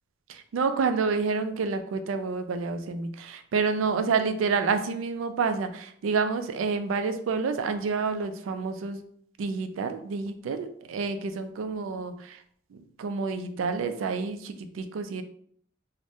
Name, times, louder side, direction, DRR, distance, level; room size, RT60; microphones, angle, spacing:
voice 1, 0.3-9.0 9.4-12.4 12.7-15.2, right 5 dB, 85° right, 9 dB, 0.3 m, -29 dB
2.6 x 2.1 x 3.4 m, 0.64 s
head